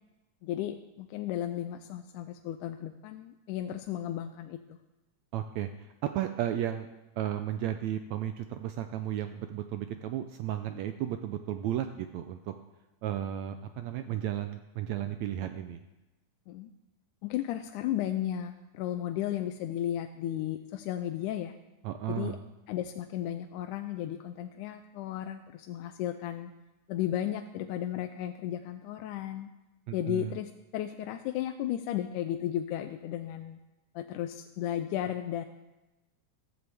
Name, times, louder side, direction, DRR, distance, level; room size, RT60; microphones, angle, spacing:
voice 1, 0.4-4.8 16.5-16.7 17.2-21.6 22.1-22.4 22.7-26.5 26.9-29.5 29.9-33.6 34.0-35.5, left 11 dB, 80° left, 7 dB, 2.0 m, -34 dB
voice 2, 5.3-6.9 7.2-12.5 13.0-15.8 21.8-22.4 29.9-30.3, right 11 dB, 80° right, 8 dB, 1.7 m, -34 dB
14.5 x 14.5 x 3.4 m, 1.1 s
omnidirectional pair, 3.6 m